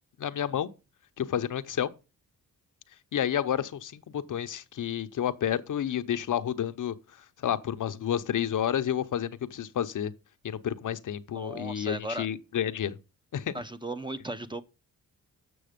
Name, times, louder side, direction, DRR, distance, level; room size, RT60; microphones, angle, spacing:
voice 1, 0.2-0.7 1.2-1.9 3.1-6.9 7.4-10.1 10.4-13.0 13.3-13.5, left 9 dB, 60° left, 0.7 m, -30 dB
voice 2, 11.3-12.3 13.5-14.6, right 1 dB, 15° right, 0.7 m, -36 dB
7.8 x 6.3 x 5.1 m
cardioid pair, 65°, 36 cm